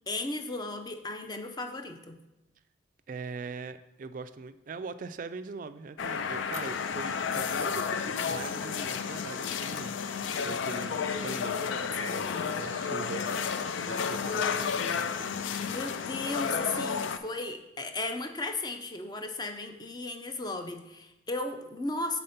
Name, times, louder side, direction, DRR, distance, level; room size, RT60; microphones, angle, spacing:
voice 1, 0.1-2.2 10.4-10.5 12.1-12.4 15.6-22.2, left 2 dB, 20° left, 6 dB, 0.5 m, -35 dB
voice 2, 3.1-15.3, right 4 dB, 45° right, 11 dB, 0.3 m, -42 dB
sound 1, 6.0-17.2, left 6 dB, 85° left, 0.4 m, -32 dB
6.5 x 4.2 x 5.7 m, 0.94 s
head